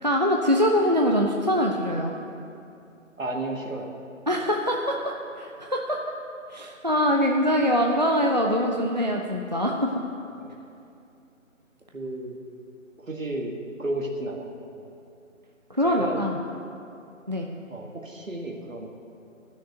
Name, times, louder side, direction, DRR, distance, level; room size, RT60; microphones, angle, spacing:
voice 1, 0.0-2.1 4.3-6.0 6.5-9.9 15.7-16.4 17.3-17.5, equal, 35° right, 0 dB, 0.5 m, -23 dB
voice 2, 3.2-3.9 10.4-10.6 11.9-12.4 13.0-14.9 15.9-16.2 17.7-18.9, right 1 dB, 70° right, 1 dB, 1.8 m, -33 dB
13.0 x 6.5 x 7.8 m, 2.6 s
figure-of-eight pair, 155°, 41 cm